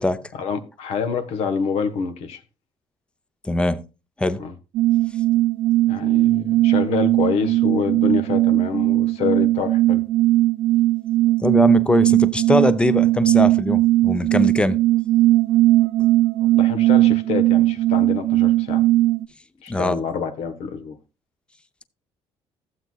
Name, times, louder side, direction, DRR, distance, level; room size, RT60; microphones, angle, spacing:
voice 1, 0.3-2.4 4.4-4.5 5.9-10.0 16.4-18.8 19.6-21.0, left 6 dB, 75° left, 1.3 m, -27 dB
voice 2, 3.4-3.8 4.2-4.4 11.4-14.8 19.7-20.0, left 2 dB, 10° left, 0.6 m, -21 dB
sound 1, 4.7-19.2, right 16 dB, 65° right, 0.5 m, -18 dB
15.0 x 7.9 x 2.3 m
cardioid pair, 135°, 11 cm